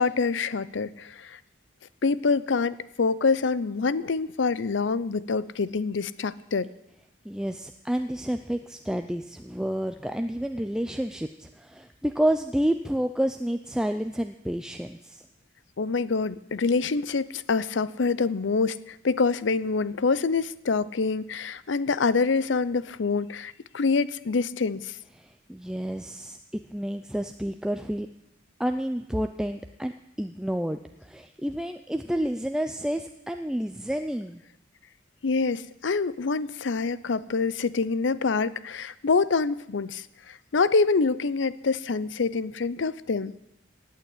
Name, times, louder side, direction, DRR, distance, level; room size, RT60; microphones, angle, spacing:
voice 1, 0.0-1.4 2.0-6.7 15.8-25.0 35.2-43.3, left 4 dB, 70° left, 18 dB, 0.6 m, -26 dB
voice 2, 7.3-15.2 25.2-26.4 26.7-28.1 28.6-29.9 30.2-34.4, equal, 5° right, 7 dB, 0.5 m, -29 dB
17.0 x 8.8 x 8.5 m, 0.86 s
head